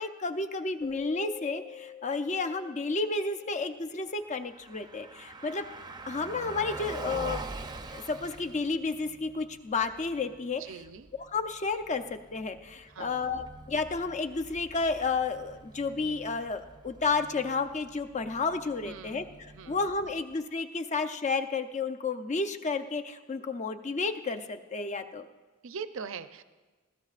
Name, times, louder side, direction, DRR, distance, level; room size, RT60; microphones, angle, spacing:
voice 1, 0.0-5.7 6.1-7.4 7.8-10.6 11.3-25.3, left 4 dB, 35° left, 7 dB, 0.6 m, -31 dB
Keyboard (musical), 0.8-3.5, left 7 dB, 50° left, 3.9 m, -46 dB
Car passing by, 4.2-20.3, right 2 dB, 20° right, 0.6 m, -45 dB
voice 2, 10.6-11.1 12.9-13.4 18.8-20.2 25.6-26.4, right 6 dB, 70° right, 11 dB, 0.5 m, -43 dB
20.0 x 15.0 x 2.5 m, 1.3 s
head